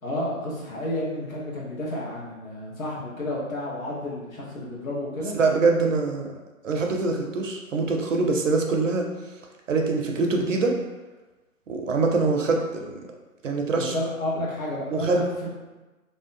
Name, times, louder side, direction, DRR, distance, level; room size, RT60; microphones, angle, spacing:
voice 1, 0.0-5.3 13.8-15.2, left 1 dB, 65° left, -5 dB, 1.0 m, -31 dB
voice 2, 5.3-6.3 6.6-9.1 9.7-10.7 11.7-12.8 13.4-13.9 14.9-15.2, right 3 dB, 60° right, 2 dB, 0.5 m, -23 dB
2.6 x 2.1 x 2.5 m, 1.2 s
hypercardioid pair, 165°, 43 cm